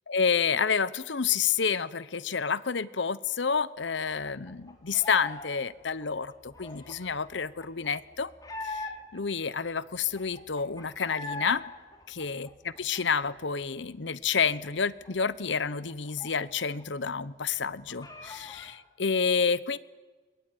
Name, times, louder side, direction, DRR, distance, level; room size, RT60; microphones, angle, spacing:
voice 1, 0.1-8.3 8.6-11.6 12.2-12.5 12.8-19.8, left 6 dB, 70° left, 17 dB, 0.9 m, -29 dB
sound 1, 3.9-5.5 5.7-9.3 9.7-9.8 10.0-11.6 11.9-13.6 14.0-14.1 14.4-16.8 17.1-17.2 17.5-18.7, left 2 dB, 20° left, 3.3 m, -42 dB
22.5 x 21.0 x 9.3 m, 1.3 s
head